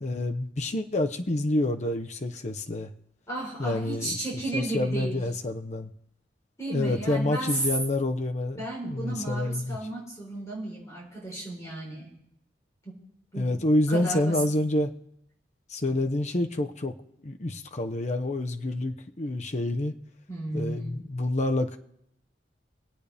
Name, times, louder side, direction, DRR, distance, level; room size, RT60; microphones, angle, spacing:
voice 1, 0.0-2.9 3.6-4.3 4.5-5.9 6.7-9.8 13.4-14.9 15.7-16.9 17.2-19.9 20.5-21.8, left 1 dB, 40° left, 5 dB, 0.9 m, -28 dB
voice 2, 3.3-5.2 6.6-7.6 8.6-12.1 13.3-13.5 13.9-14.4 20.3-21.0, right 1 dB, 20° left, -5 dB, 4.1 m, -34 dB
25.0 x 8.5 x 3.5 m, 0.75 s
head